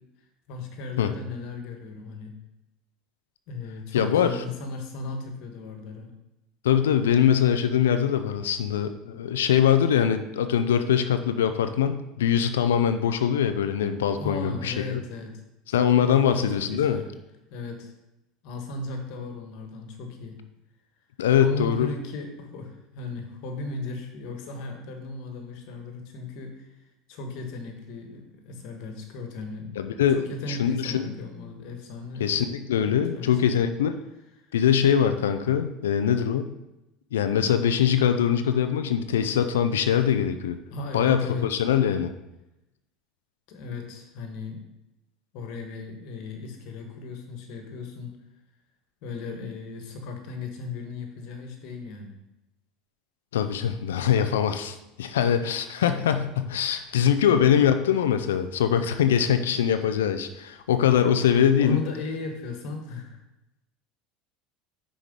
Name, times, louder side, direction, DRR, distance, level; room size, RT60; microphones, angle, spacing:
voice 1, 0.5-2.3 3.5-6.1 14.2-15.4 16.0-17.1 17.5-17.9 18.4-20.4 21.4-26.7 27.1-29.8 30.1-32.3 32.8-33.7 40.7-41.5 43.5-44.6 45.3-48.2 49.0-52.2 61.6-63.2, left 3 dB, 65° left, 4 dB, 1.5 m, -36 dB
voice 2, 3.9-4.4 6.6-15.0 15.7-17.0 21.2-21.9 29.8-31.1 32.2-34.0 34.5-36.5 37.1-40.6 40.9-42.1 53.3-61.8, left 9 dB, 90° left, 9 dB, 0.5 m, -23 dB
5.9 x 4.8 x 5.3 m, 0.92 s
hypercardioid pair, 90°, 0 cm